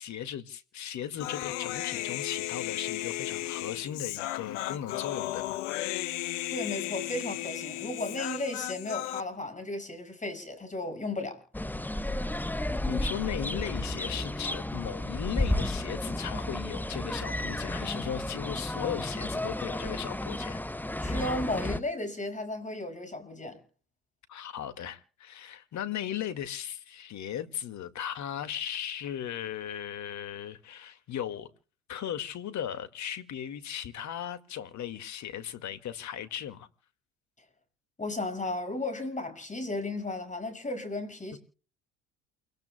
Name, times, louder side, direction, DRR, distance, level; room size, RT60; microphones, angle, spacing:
voice 1, 0.0-6.2 12.8-20.6 24.3-31.5 31.9-36.7 41.3-41.4, left 10 dB, 50° left, 2.0 m, -37 dB
Human voice, 1.2-9.2, left 16 dB, 75° left, 1.0 m, -35 dB
voice 2, 6.5-11.4 21.0-23.6 38.0-41.4, left 2 dB, 20° left, 5.8 m, -34 dB
sound 1, 11.5-21.8, left 1 dB, 5° left, 0.9 m, -32 dB
29.0 x 18.5 x 2.2 m
hypercardioid pair, 65°, 36 cm